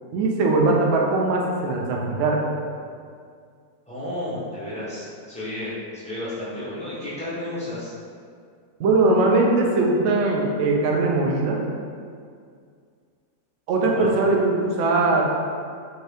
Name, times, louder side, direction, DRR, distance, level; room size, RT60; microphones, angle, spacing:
voice 1, 0.1-2.4 8.8-11.6 13.7-15.2, right 2 dB, 75° right, -1 dB, 0.7 m, -20 dB
voice 2, 3.9-7.9 13.9-14.3, left 1 dB, 10° left, -11 dB, 0.5 m, -32 dB
3.5 x 2.8 x 3.3 m, 2.2 s
omnidirectional pair, 1.8 m